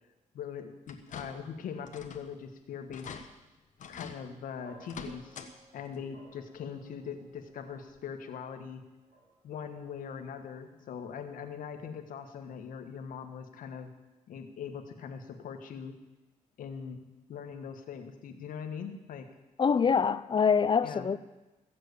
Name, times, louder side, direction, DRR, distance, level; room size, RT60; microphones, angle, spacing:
voice 1, 0.3-3.2 3.9-5.4 5.7-8.8 9.4-13.9 14.3-15.9 16.6-17.0 17.3-19.3 20.8-21.1, left 7 dB, 85° left, 1.5 m, -41 dB
sound 1, 0.9-1.5 1.9-2.3 2.6-2.7 2.9-3.2 3.8-4.2 4.8-5.5 5.9-6.0 7.4-7.5 8.0-8.1, left 5 dB, 70° left, 1.4 m, -44 dB
sound 2, 4.6-13.0, right 2 dB, 50° right, 6.1 m, -61 dB
voice 2, 19.6-21.2, left 6 dB, 35° left, 0.6 m, -25 dB
15.5 x 7.6 x 8.3 m
cardioid pair, 95°, 14 cm